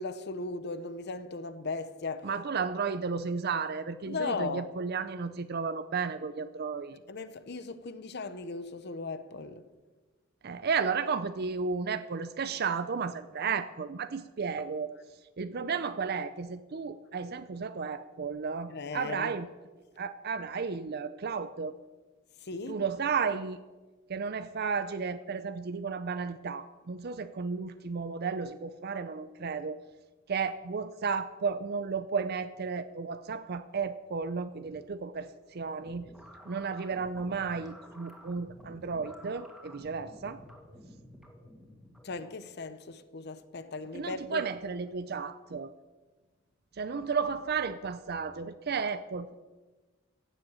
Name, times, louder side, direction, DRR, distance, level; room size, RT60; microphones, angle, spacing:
voice 1, 0.0-2.3 4.0-4.7 7.1-9.6 18.7-19.3 22.4-22.8 42.0-44.4, left 3 dB, 55° left, 0.8 m, -37 dB
voice 2, 2.2-7.0 10.4-14.9 15.4-19.5 20.0-21.7 22.7-23.6 24.1-29.8 30.3-36.1 36.5-40.4 43.9-45.7 46.7-49.4, right 5 dB, 55° right, 0.5 m, -33 dB
sound 1, 35.8-42.5, equal, ahead, 2.3 m, -52 dB
15.5 x 7.7 x 8.7 m
head